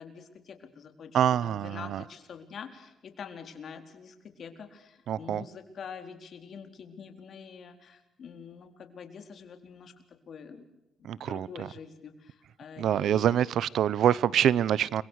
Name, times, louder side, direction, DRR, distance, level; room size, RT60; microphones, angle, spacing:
voice 1, 0.0-10.6 11.0-13.4, left 6 dB, 55° left, 6 dB, 4.2 m, -46 dB
voice 2, 1.1-2.0 5.1-5.4 11.0-11.7 12.8-15.0, right 10 dB, 70° right, 21 dB, 0.8 m, -25 dB
30.0 x 24.0 x 6.5 m, 0.95 s
cardioid pair, 90°, 0 cm